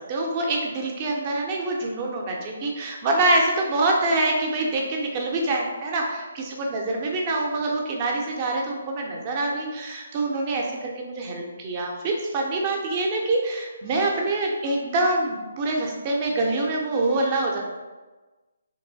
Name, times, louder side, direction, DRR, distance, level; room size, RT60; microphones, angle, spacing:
voice 1, 0.1-17.6, right 2 dB, 25° right, 0 dB, 0.6 m, -25 dB
3.6 x 2.9 x 2.6 m, 1.2 s
figure-of-eight pair, 140°, 0 cm